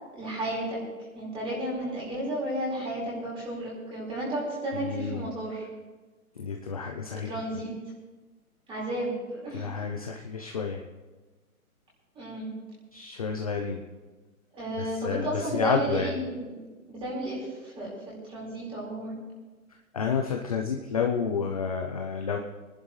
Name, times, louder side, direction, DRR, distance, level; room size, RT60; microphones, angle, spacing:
voice 1, 0.1-0.8 1.1-5.7 7.1-7.7 8.7-9.7 12.1-12.5 14.6-19.2, right 1 dB, 10° right, -5 dB, 4.6 m, -33 dB
voice 2, 4.8-5.3 6.4-7.3 9.5-10.8 12.9-13.8 14.8-16.1 19.9-22.4, left 6 dB, 25° left, 2 dB, 0.5 m, -30 dB
24.5 x 11.0 x 3.2 m, 1.3 s
hypercardioid pair, 160°, 45 cm